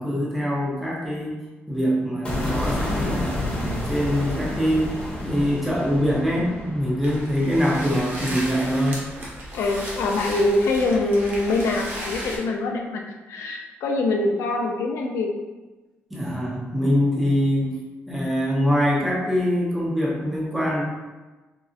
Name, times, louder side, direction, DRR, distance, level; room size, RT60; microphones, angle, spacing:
voice 1, 0.0-1.3 1.7-9.0 16.1-17.7 18.1-20.8, equal, 5° right, -5 dB, 0.6 m, -24 dB
sound 1, 2.3-8.5, left 1 dB, 25° left, 0.9 m, -30 dB
sound 2, 7.0-12.4, right 1 dB, 50° right, 0.7 m, -35 dB
voice 2, 9.5-13.0 13.3-15.3, left 2 dB, 90° left, 1 dB, 0.4 m, -24 dB
3.7 x 2.0 x 2.5 m, 1.2 s
cardioid pair, 165°, 5 cm